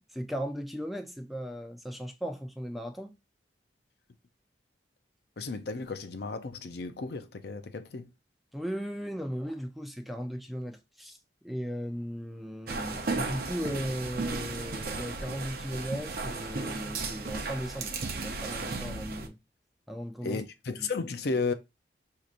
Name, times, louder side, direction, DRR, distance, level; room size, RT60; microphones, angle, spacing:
voice 1, 0.0-3.1 8.5-11.2 11.4-19.4 19.9-20.4 20.8-20.9, equal, ahead, 0.5 m, -37 dB
voice 2, 5.4-8.1 20.2-21.5, left 4 dB, 60° left, 0.5 m, -33 dB
sound 1, 12.7-19.3, right 3 dB, 55° right, 0.7 m, -35 dB
6.1 x 2.8 x 2.5 m
head